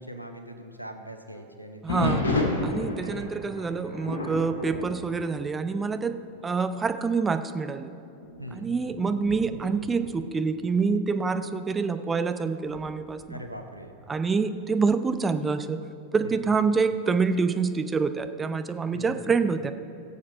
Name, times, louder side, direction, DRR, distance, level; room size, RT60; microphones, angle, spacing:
voice 1, 0.0-3.3 3.7-4.0 8.4-8.8 13.3-13.9 16.2-16.5 18.9-19.3, right 1 dB, 90° left, 6 dB, 0.8 m, -42 dB
voice 2, 1.8-6.2 6.4-7.9 8.5-13.4 14.1-15.8 16.1-19.7, right 4 dB, 15° right, 10 dB, 0.5 m, -26 dB
sound 1, 1.9-6.0 6.4-6.7 7.3-7.4 8.2-10.9 12.7-13.2, left 2 dB, 75° left, 1.7 m, -32 dB
17.5 x 7.4 x 5.5 m, 2.5 s
figure-of-eight pair, 90°, 0 cm